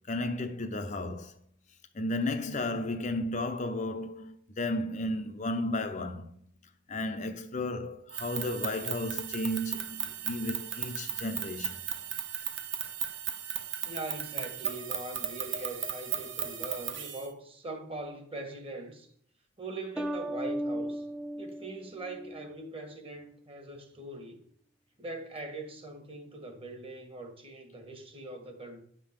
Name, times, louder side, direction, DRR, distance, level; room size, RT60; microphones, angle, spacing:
voice 1, 0.1-1.4 1.9-6.3 6.9-11.8, left 1 dB, 40° left, 0.6 m, -33 dB
sound 1, 8.1-17.3, right 10 dB, 75° right, 1.0 m, -36 dB
voice 2, 13.8-19.1 19.6-21.0 21.4-24.4 25.0-28.8, right 2 dB, 30° right, 1.4 m, -41 dB
sound 2, 20.0-22.6, right 1 dB, 5° right, 0.6 m, -36 dB
10.5 x 3.7 x 7.2 m
head